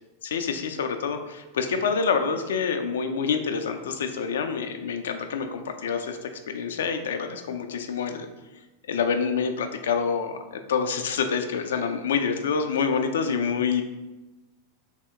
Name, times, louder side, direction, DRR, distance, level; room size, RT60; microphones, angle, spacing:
voice 1, 0.2-8.3 8.9-13.8, left 6 dB, 60° left, 7 dB, 0.4 m, -27 dB
3.5 x 2.8 x 3.3 m, 1.1 s
figure-of-eight pair, 90°, 0 cm